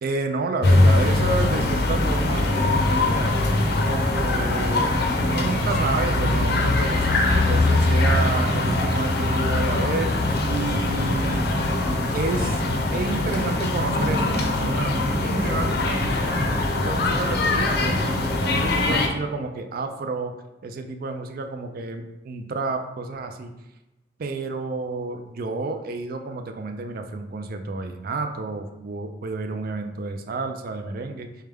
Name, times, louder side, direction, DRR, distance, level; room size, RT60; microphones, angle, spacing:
voice 1, 0.0-3.4 3.9-7.1 7.5-10.1 10.5-11.4 12.1-12.7 12.9-18.0 18.4-20.3 20.6-23.5 24.2-31.4, right 3 dB, 55° right, 6 dB, 0.4 m, -30 dB
sound 1, 0.6-19.1, left 2 dB, 60° left, 0.5 m, -22 dB
4.7 x 2.2 x 3.4 m, 0.97 s
head